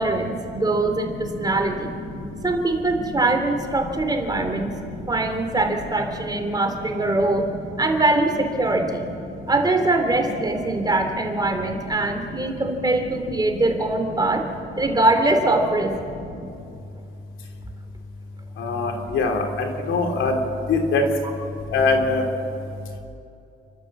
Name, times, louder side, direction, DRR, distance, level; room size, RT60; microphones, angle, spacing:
voice 1, 0.0-2.0 2.4-4.7 5.1-7.5 7.8-9.0 9.5-14.5 14.8-15.9, right 2 dB, 20° right, 4 dB, 3.3 m, -22 dB
voice 2, 18.6-20.4 20.7-21.0 21.7-22.2, left 4 dB, 80° left, 3 dB, 3.1 m, -22 dB
29.5 x 12.5 x 7.5 m, 2.6 s
cardioid pair, 90°, 20 cm